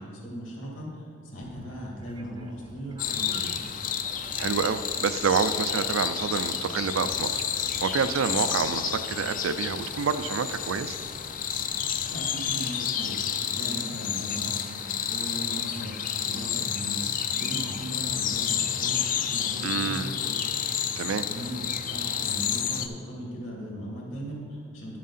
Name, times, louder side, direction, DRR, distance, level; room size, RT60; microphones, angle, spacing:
voice 1, 0.0-3.5 12.0-13.2 13.5-14.7 15.1-15.9 16.2-17.0 17.3-20.6 21.2-25.0, equal, 70° left, -3 dB, 2.4 m, -38 dB
sound 1, 1.4-12.6, right 1 dB, 25° right, 0.5 m, -50 dB
sound 2, 3.0-22.9, left 8 dB, 40° left, 0.4 m, -30 dB
voice 2, 4.4-7.4 7.8-11.0 19.6-20.1 21.0-21.3, right 6 dB, 75° right, 12 dB, 0.4 m, -28 dB
10.5 x 7.4 x 4.2 m, 2.4 s
head